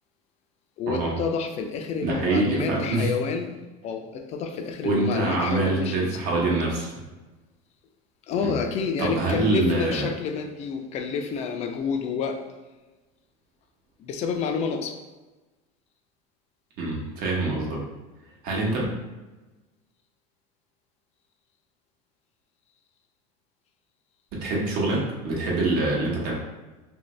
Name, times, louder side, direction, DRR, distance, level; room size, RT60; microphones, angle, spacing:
voice 1, 0.8-3.5 3.8-6.2 8.3-12.4 14.0-15.0, left 5 dB, 40° left, 5 dB, 0.4 m, -29 dB
voice 2, 2.0-3.1 4.8-6.9 8.4-8.5 9.0-10.1 16.8-17.8 18.4-18.9 24.3-26.3, right 2 dB, 55° right, -3 dB, 1.1 m, -25 dB
2.9 x 2.7 x 3.1 m, 1.2 s
supercardioid pair, 130°, 18 cm